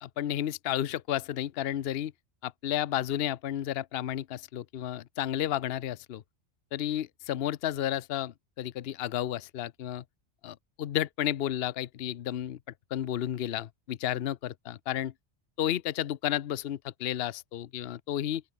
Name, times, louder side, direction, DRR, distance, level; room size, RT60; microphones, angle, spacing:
voice 1, 0.0-2.1 2.4-6.2 6.7-10.0 10.4-12.6 12.9-15.1 15.6-18.4, left 11 dB, 65° left, 0.9 m, -32 dB
open air
omnidirectional pair, 1.2 m